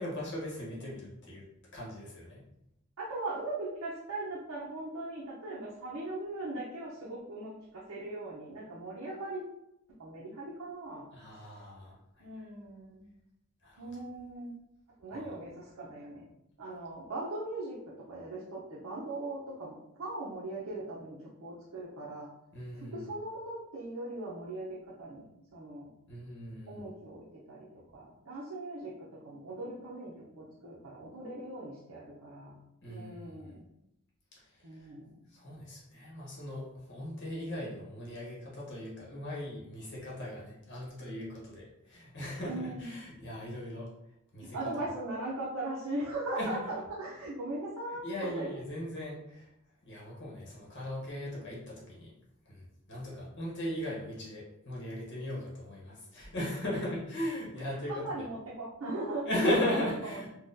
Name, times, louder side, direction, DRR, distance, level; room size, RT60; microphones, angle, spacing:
voice 1, 0.0-1.5 1.7-2.4 11.1-12.0 13.6-13.9 15.1-15.3 22.5-23.1 26.1-26.9 32.8-33.3 34.4-34.5 34.7-34.8 35.3-43.9 44.3-44.6 46.4-46.6 48.0-49.5 49.8-52.1 52.5-58.3 59.2-60.3, left 1 dB, 55° left, -4 dB, 1.0 m, -37 dB
voice 2, 3.0-9.4 10.0-11.1 12.2-13.1 13.8-14.5 15.0-16.2 16.6-17.8 18.1-22.3 22.7-25.9 26.7-27.7 27.9-28.9 29.2-32.6 32.9-33.6 34.6-35.2 42.5-43.0 44.5-48.6 57.9-59.3 60.1-60.3, right 2 dB, 75° right, -6 dB, 0.7 m, -39 dB
3.9 x 2.3 x 2.6 m, 0.83 s
head